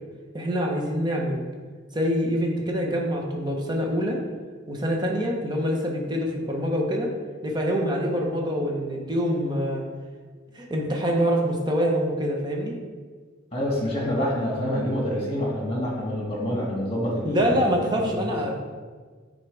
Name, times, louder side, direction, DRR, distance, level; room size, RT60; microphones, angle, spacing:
voice 1, 0.3-1.4 1.9-4.2 4.7-7.1 7.4-9.8 10.5-12.7 17.2-18.6, equal, 20° right, 0 dB, 0.9 m, -25 dB
voice 2, 13.5-17.7 18.0-18.3, equal, 30° left, -3 dB, 1.9 m, -27 dB
9.3 x 4.0 x 3.4 m, 1.5 s
head